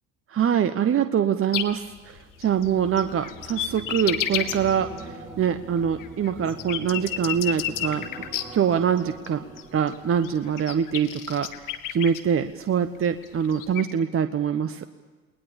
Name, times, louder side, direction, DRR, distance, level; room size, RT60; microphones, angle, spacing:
voice 1, 0.3-8.1 8.5-9.4 9.7-11.5 11.9-14.9, right 8 dB, 35° right, 10 dB, 1.2 m, -24 dB
sound 1, 1.5-1.6 1.9-5.1 5.4-8.4 9.0-9.3 9.6-9.7 9.9-10.0 10.2-12.2 13.0-13.8, left 12 dB, 50° left, 2.0 m, -31 dB
sound 2, 2.1-11.5 11.8-12.2, right 1 dB, 5° right, 6.1 m, -44 dB
29.5 x 20.5 x 7.2 m, 1.4 s
hypercardioid pair, 65°, 40 cm